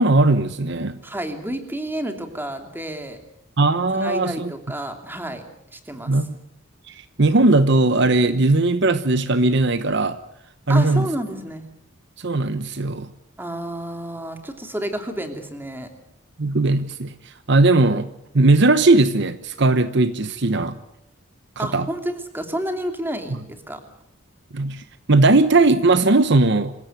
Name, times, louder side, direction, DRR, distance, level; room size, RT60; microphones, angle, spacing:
voice 1, 0.0-1.0 3.6-4.5 6.1-6.3 6.9-10.2 10.7-11.1 12.2-13.1 16.4-18.1 18.3-20.8 21.6-21.9 24.5-26.7, right 2 dB, 55° right, 12 dB, 1.0 m, -18 dB
voice 2, 1.0-3.2 3.9-5.4 5.7-6.2 10.7-11.7 13.4-15.9 21.6-23.8, right 1 dB, 10° right, 6 dB, 2.8 m, -30 dB
26.0 x 16.5 x 9.2 m, 0.80 s
head